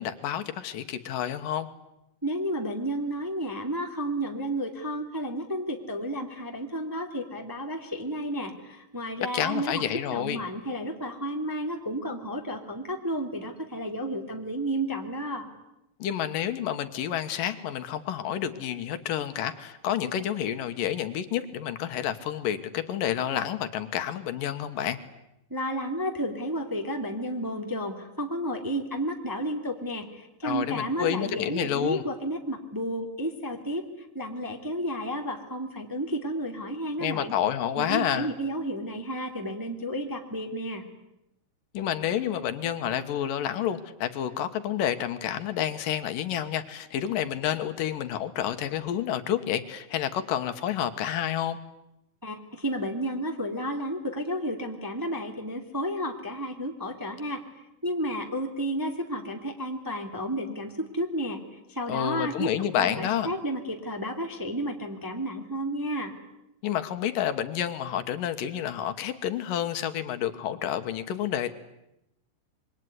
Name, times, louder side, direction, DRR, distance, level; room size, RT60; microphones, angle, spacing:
voice 1, 0.0-1.7 9.3-10.4 16.0-25.0 30.4-32.0 37.0-38.3 41.7-51.6 61.9-63.3 66.6-71.5, left 10 dB, 75° left, 9 dB, 2.9 m, -29 dB
voice 2, 2.2-9.8 10.1-15.5 25.5-37.3 37.8-40.8 52.2-57.4 57.8-61.4 61.7-62.5 62.7-66.1, equal, 5° right, 3 dB, 1.7 m, -32 dB
26.5 x 23.0 x 9.6 m, 0.86 s
omnidirectional pair, 4.1 m